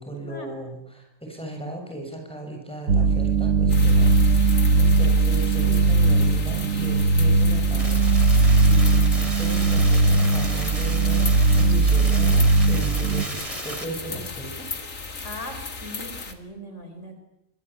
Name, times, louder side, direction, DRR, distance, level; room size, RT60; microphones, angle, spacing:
voice 1, 0.0-14.7, right 1 dB, 5° left, 2 dB, 7.9 m, -36 dB
sound 1, 2.9-13.2, right 3 dB, 90° right, 1.7 m, -19 dB
sound 2, 3.7-16.3, left 3 dB, 80° left, 2.8 m, -36 dB
sound 3, 7.8-13.8, right 1 dB, 25° right, 3.1 m, -36 dB
voice 2, 15.2-17.2, left 1 dB, 65° left, 6 dB, 4.7 m, -39 dB
26.0 x 24.5 x 9.0 m, 0.85 s
omnidirectional pair, 1.3 m